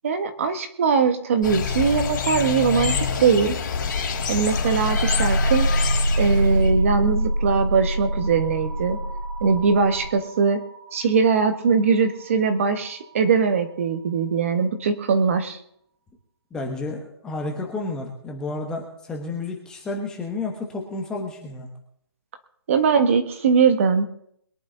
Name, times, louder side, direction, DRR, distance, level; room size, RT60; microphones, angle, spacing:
voice 1, 0.0-3.6 4.3-5.7 6.2-9.0 9.4-10.6 10.9-15.6 22.7-24.1, right 5 dB, 30° right, 8 dB, 1.4 m, -21 dB
sound 1, 1.4-6.7, left 6 dB, 45° left, 3.7 m, -27 dB
sound 2, 4.1-13.4, equal, 70° right, 2.5 m, -26 dB
voice 2, 16.5-21.7, left 3 dB, 5° left, 1 dB, 1.1 m, -31 dB
22.0 x 11.0 x 3.9 m, 0.71 s
hypercardioid pair, 170°, 14 cm